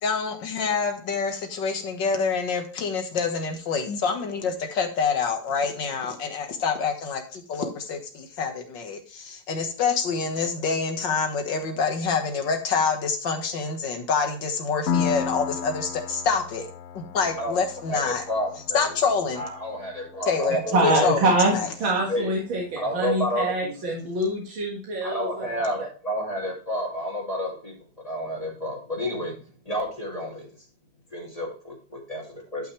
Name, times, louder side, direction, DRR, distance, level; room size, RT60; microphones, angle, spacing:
voice 1, 0.0-16.6 17.0-18.2 18.7-19.4 20.3-21.2, left 5 dB, 70° left, 5 dB, 2.1 m, -26 dB
Piano, 14.9-22.3, left 7 dB, 90° left, 0.5 m, -34 dB
voice 2, 17.9-18.8 19.3-21.1 22.1-22.3 22.8-23.7 25.0-29.4 29.6-30.5 31.1-32.7, equal, 20° left, -3 dB, 2.7 m, -30 dB
voice 3, 20.7-25.7, right 2 dB, 90° right, -2 dB, 2.6 m, -25 dB
11.0 x 5.9 x 3.2 m, 0.39 s
omnidirectional pair, 2.1 m